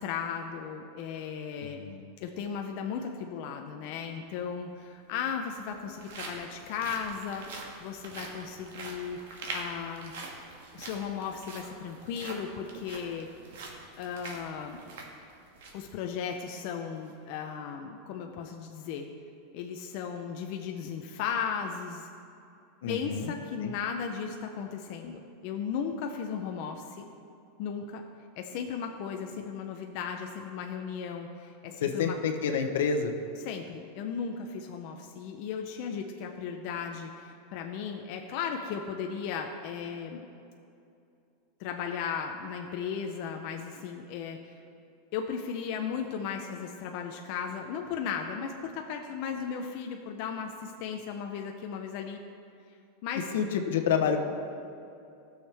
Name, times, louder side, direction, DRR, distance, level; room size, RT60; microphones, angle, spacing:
voice 1, 0.0-1.8 2.2-10.1 10.7-13.3 14.0-14.8 15.7-19.1 19.5-22.1 22.9-27.1 27.6-28.0 28.4-32.2 33.4-40.3 41.6-44.6 45.1-52.2 53.0-53.2, left 7 dB, 45° left, 3 dB, 0.5 m, -36 dB
voice 2, 1.6-2.1 22.8-23.3 23.6-23.7 31.8-33.2 53.3-54.3, left 6 dB, 80° left, 5 dB, 0.9 m, -28 dB
sound 1, 4.3-4.4 5.3-15.9 16.3-16.4 16.9-17.1, right 3 dB, 75° right, 1.6 m, -44 dB
15.5 x 6.4 x 3.4 m, 2.6 s
supercardioid pair, 170°, 0 cm